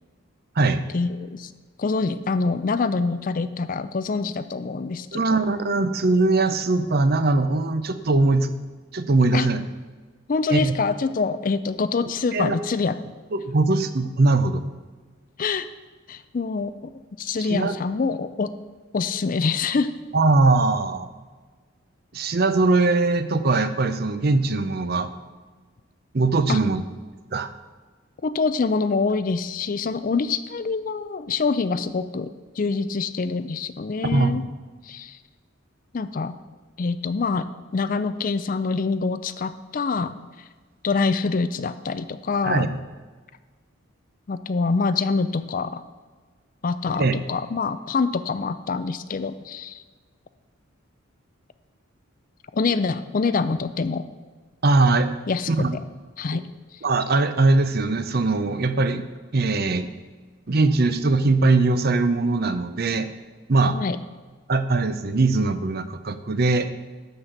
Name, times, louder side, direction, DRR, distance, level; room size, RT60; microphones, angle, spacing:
voice 1, 0.9-1.5 1.8-5.4 9.3-9.5 10.3-13.0 15.4-15.7 16.1-16.9 17.2-18.5 18.9-19.9 26.5-26.6 28.2-32.3 32.6-34.4 34.8-35.2 35.9-36.3 36.8-37.5 37.7-40.1 40.8-42.7 44.3-45.8 46.6-49.8 52.5-54.0 55.3-55.8 56.2-56.4 63.7-64.0, left 4 dB, 40° left, 12 dB, 0.4 m, -25 dB
voice 2, 5.1-8.5 8.9-9.6 10.5-10.7 12.3-12.6 13.3-14.6 17.4-17.7 20.1-21.1 22.1-25.1 26.1-26.8 27.3-27.5 34.0-34.4 42.4-42.7 47.0-47.2 54.6-55.1 55.5-55.8 56.8-59.0 59.3-59.9 60.5-63.1 63.5-63.8 64.5-66.7, right 3 dB, 45° right, 11 dB, 0.6 m, -21 dB
12.0 x 4.2 x 7.8 m, 1.4 s
head